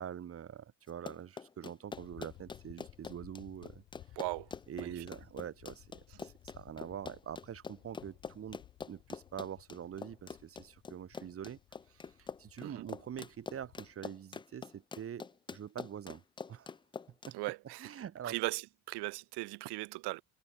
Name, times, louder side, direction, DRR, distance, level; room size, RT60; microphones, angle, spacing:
voice 1, 0.0-4.2 4.7-11.6 11.9-16.2 16.5-16.7 17.3-17.4 17.8-18.4, right 9 dB, 35° right, 3.0 m, -45 dB
Run, 0.9-17.3, left 5 dB, 15° left, 0.3 m, -45 dB
sound 1, 1.9-13.9, left 14 dB, 55° left, 4.8 m, -59 dB
voice 2, 4.2-4.5 4.8-4.9 12.6-12.8 17.3-17.9 18.2-18.6 18.9-20.2, right 23 dB, 80° right, 1.3 m, -38 dB
cardioid pair, 160°, 40 cm